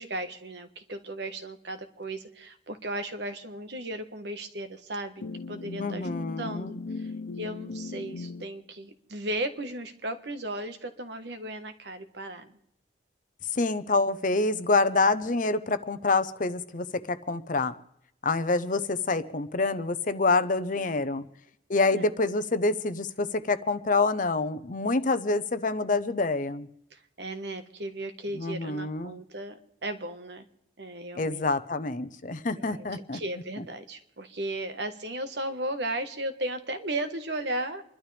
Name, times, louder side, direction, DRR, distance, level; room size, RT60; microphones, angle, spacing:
voice 1, 0.0-6.1 6.4-7.1 7.4-12.5 21.9-22.1 26.9-30.5 30.8-31.5 32.5-37.8, right 1 dB, 65° right, 8 dB, 1.4 m, -36 dB
sound 1, 5.2-8.5, left 3 dB, 70° left, 0.6 m, -38 dB
voice 2, 5.8-6.7 13.5-17.8 18.2-21.3 21.7-26.7 28.3-29.2 31.2-33.2, left 3 dB, 45° left, 12 dB, 0.8 m, -27 dB
29.0 x 12.0 x 3.4 m, 0.77 s
head